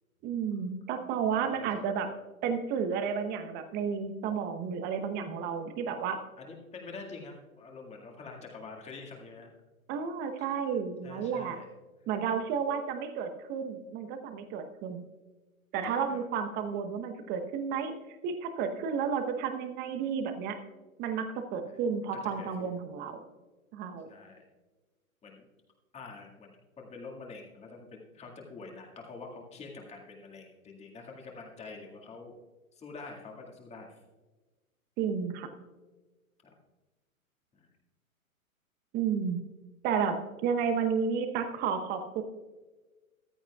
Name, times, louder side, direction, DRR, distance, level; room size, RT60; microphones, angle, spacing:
voice 1, 0.2-2.1 2.4-6.2 9.9-11.6 12.1-15.1 15.7-17.9 18.2-20.6 21.0-23.2 23.7-24.1 35.0-35.5 38.9-39.4 39.8-42.2, right 6 dB, 25° right, 7 dB, 0.9 m, -32 dB
voice 2, 1.4-1.9 5.9-6.0 6.4-9.5 10.4-10.6 11.0-11.7 15.8-16.2 21.7-21.8 22.2-22.7 24.1-24.4 25.2-25.5 25.9-32.4 32.7-34.0 36.4-36.5 37.5-37.7, left 4 dB, 15° left, 0 dB, 2.0 m, -46 dB
14.5 x 13.0 x 2.3 m, 1.2 s
figure-of-eight pair, 120°, 43 cm